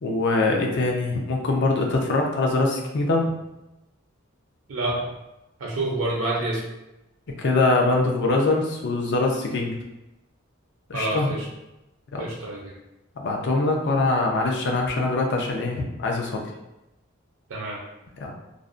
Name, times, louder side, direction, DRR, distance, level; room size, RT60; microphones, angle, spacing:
voice 1, 0.0-3.3 7.4-9.8 10.9-11.3 12.1-12.3 13.2-16.4 18.2-18.3, left 2 dB, 60° left, 0 dB, 0.5 m, -23 dB
voice 2, 4.7-5.0 5.6-6.7 10.9-11.5 12.2-12.7 17.5-17.8, right 2 dB, 70° right, -2 dB, 0.5 m, -28 dB
2.5 x 2.1 x 2.4 m, 0.95 s
head